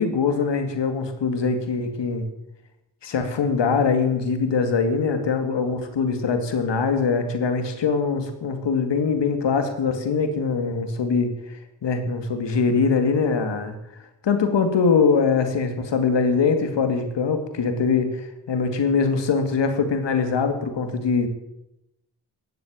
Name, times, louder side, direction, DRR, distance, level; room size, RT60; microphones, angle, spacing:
voice 1, 0.0-2.3 3.0-13.7 14.2-21.3, left 5 dB, 80° left, 7 dB, 2.4 m, -22 dB
18.5 x 7.8 x 8.7 m, 0.89 s
cardioid pair, 55°, 42 cm